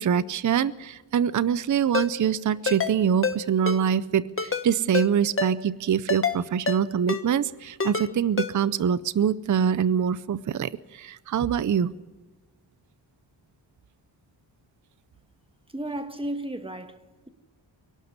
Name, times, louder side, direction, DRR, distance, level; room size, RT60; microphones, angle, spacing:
voice 1, 0.0-11.9, right 8 dB, 40° right, 0.6 m, -24 dB
Ringtone, 1.9-2.1 2.7-2.9 3.2-3.4 3.7-3.8 4.4-4.6 4.9-5.1 5.4-5.5 6.1-6.4 6.7-6.8 7.1-7.2 7.8-8.1 8.4-8.5, left 5 dB, 30° left, 1.3 m, -26 dB
voice 2, 15.7-17.3, right 1 dB, 10° right, 1.5 m, -34 dB
23.5 x 12.0 x 9.5 m
wide cardioid pair, 110°, 45 cm